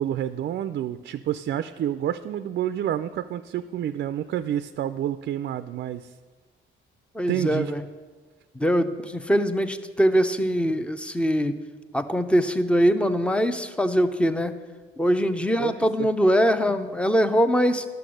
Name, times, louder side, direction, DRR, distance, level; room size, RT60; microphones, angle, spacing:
voice 1, 0.0-6.1 7.3-7.7 15.6-16.1, right 11 dB, 60° right, 11 dB, 0.4 m, -29 dB
voice 2, 7.1-7.8 8.6-11.6 11.9-14.5 15.0-17.8, equal, 5° left, 10 dB, 0.6 m, -22 dB
11.0 x 6.9 x 6.3 m, 1.4 s
cardioid pair, 90°, 20 cm